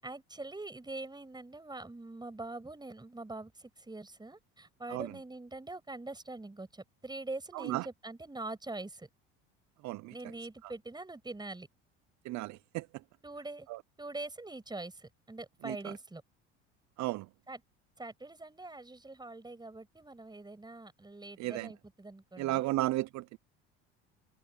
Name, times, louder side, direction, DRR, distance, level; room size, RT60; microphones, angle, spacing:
voice 1, 0.0-9.1 10.1-11.7 13.2-13.7 14.0-16.2 17.5-17.6 18.0-22.7, right 2 dB, 15° right, 7.1 m, -44 dB
voice 2, 7.5-7.9 9.8-10.1 12.2-12.9 13.7-13.8 15.6-15.9 17.0-17.3 21.4-21.7 22.4-23.4, right 17 dB, 60° right, 0.8 m, -34 dB
supercardioid pair, 80°, 32 cm